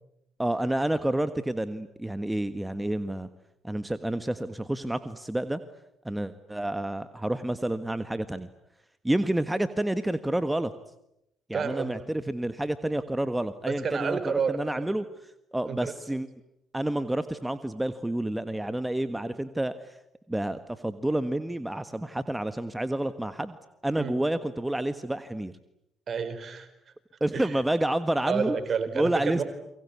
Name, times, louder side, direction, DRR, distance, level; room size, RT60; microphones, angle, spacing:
voice 1, 0.4-3.3 3.6-5.6 6.0-8.5 9.0-10.7 11.5-16.3 16.7-19.9 20.3-23.6 23.8-25.5 27.2-28.6 28.9-29.4, right 1 dB, 10° right, 11 dB, 1.5 m, -29 dB
voice 2, 11.5-12.1 13.7-14.8 15.7-15.9 24.0-24.1 26.1-26.7 27.3-27.6 28.2-29.4, right 6 dB, 50° right, 10 dB, 4.5 m, -30 dB
30.0 x 23.5 x 8.4 m, 0.82 s
hypercardioid pair, 50°, 0 cm